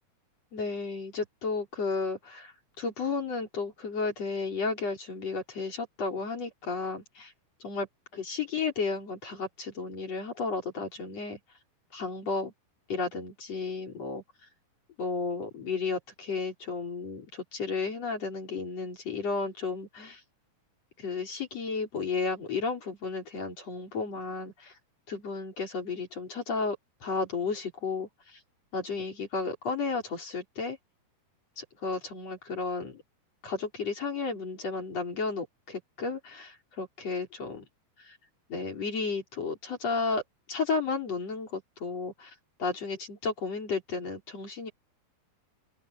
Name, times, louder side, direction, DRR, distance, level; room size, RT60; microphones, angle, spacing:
voice 1, 0.5-7.3 7.6-7.9 8.1-11.4 11.9-12.5 12.9-14.2 15.0-20.2 21.0-24.7 25.1-28.4 28.7-30.8 31.6-33.0 33.4-37.7 38.0-38.2 38.5-40.2 40.5-42.3 42.6-44.7, left 4 dB, 40° left, 5.5 m, -33 dB
open air
omnidirectional pair, 4.7 m